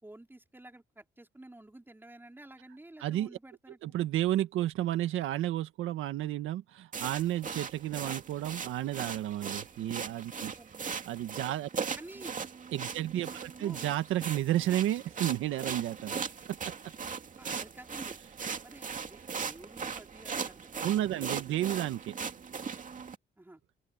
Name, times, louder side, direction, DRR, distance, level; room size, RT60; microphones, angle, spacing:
voice 1, 0.0-3.8 10.5-10.9 12.0-12.4 13.2-13.8 17.4-18.2 18.6-21.8 23.4-23.6, right 1 dB, 10° right, 4.6 m, -51 dB
voice 2, 3.8-10.5 11.1-11.9 12.7-16.1 16.5-16.7 20.8-22.1, right 13 dB, 85° right, 1.6 m, -32 dB
sound 1, 6.9-23.2, right 6 dB, 40° right, 2.5 m, -39 dB
open air
cardioid pair, 90°, 20 cm